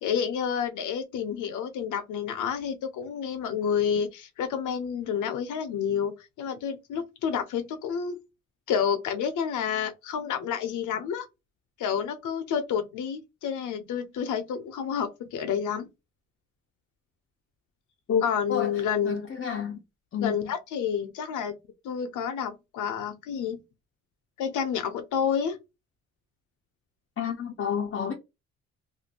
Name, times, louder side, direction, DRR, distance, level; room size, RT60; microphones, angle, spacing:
voice 1, 0.0-6.1 6.4-8.2 8.7-11.3 11.8-15.9 18.2-19.2 20.2-21.5 21.8-23.6 24.4-25.6, left 7 dB, 80° left, 0.8 m, -29 dB
voice 2, 19.0-19.8 20.1-20.5 27.2-28.1, left 7 dB, 45° left, 0.7 m, -29 dB
2.6 x 2.6 x 2.8 m
cardioid pair, 90°, 30 cm